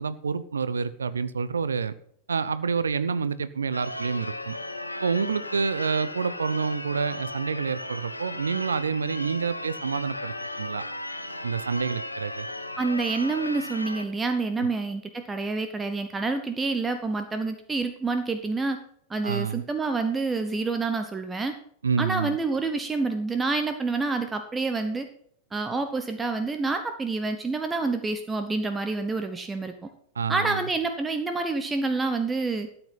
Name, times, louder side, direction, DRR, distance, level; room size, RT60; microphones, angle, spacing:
voice 1, 0.0-1.9 2.3-4.6 5.0-10.8 11.4-12.5 14.6-14.7 19.2-19.6 21.8-22.4 30.2-30.7, right 5 dB, 70° right, 16 dB, 0.6 m, -28 dB
Church bell / Car / Alarm, 3.7-14.1, left 1 dB, 85° left, 0.9 m, -36 dB
voice 2, 12.8-18.8 19.1-21.6 22.0-25.1 25.5-29.9 30.3-32.7, right 3 dB, 15° right, 7 dB, 1.0 m, -28 dB
13.0 x 7.9 x 5.7 m, 0.63 s
figure-of-eight pair, 90°, 0 cm